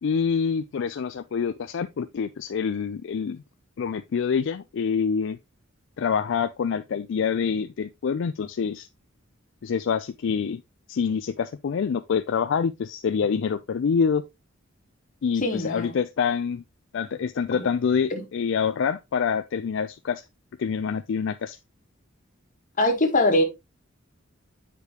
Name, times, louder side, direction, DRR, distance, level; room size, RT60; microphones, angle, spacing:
voice 1, 0.0-3.4 3.8-5.4 6.0-8.9 9.6-10.6 10.9-14.3 15.2-16.6 16.9-20.2 20.6-21.6, left 6 dB, 65° left, 0.4 m, -26 dB
voice 2, 15.4-15.9 17.5-17.7 18.1-18.2 22.8-23.4, left 1 dB, 40° left, 1.5 m, -22 dB
8.1 x 5.1 x 2.9 m
head